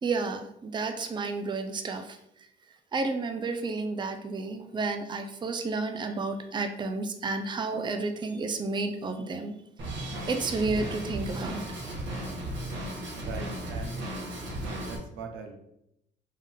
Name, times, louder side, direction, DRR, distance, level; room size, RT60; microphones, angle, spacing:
voice 1, 0.0-2.2 2.9-9.5 10.3-11.6, right 3 dB, 25° right, 6 dB, 0.4 m, -31 dB
Drum kit, 9.8-15.0, right 1 dB, 70° right, 1.5 m, -35 dB
voice 2, 13.1-14.0 14.8-15.5, right 4 dB, 85° right, 4 dB, 0.7 m, -41 dB
3.7 x 2.5 x 3.7 m, 0.80 s
cardioid pair, 90°, 20 cm